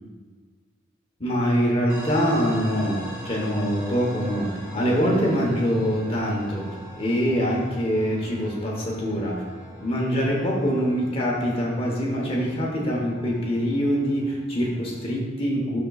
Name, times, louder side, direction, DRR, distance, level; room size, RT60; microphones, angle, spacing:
voice 1, 1.2-4.5 4.7-6.7 7.0-9.4 9.8-15.8, equal, 30° left, -2 dB, 1.1 m, -24 dB
sound 1, 1.9-15.2, equal, 15° right, 1.7 m, -41 dB
9.7 x 6.6 x 2.4 m, 1.5 s
head